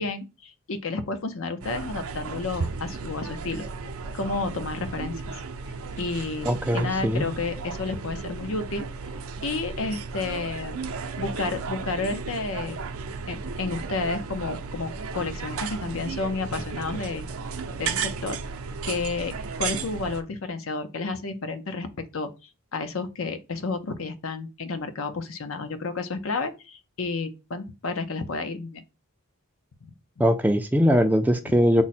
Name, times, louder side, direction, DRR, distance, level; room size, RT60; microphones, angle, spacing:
voice 1, 0.0-3.6 4.1-5.3 6.0-8.9 9.4-10.8 11.2-12.8 13.3-17.2 17.8-18.4 18.8-22.3 22.7-28.8 31.5-31.6, left 3 dB, 65° left, 0.6 m, -31 dB
sound 1, 1.6-20.2, right 5 dB, 75° right, 0.5 m, -34 dB
voice 2, 6.5-7.3 30.2-31.8, equal, 5° right, 0.3 m, -21 dB
5.9 x 2.1 x 4.2 m
head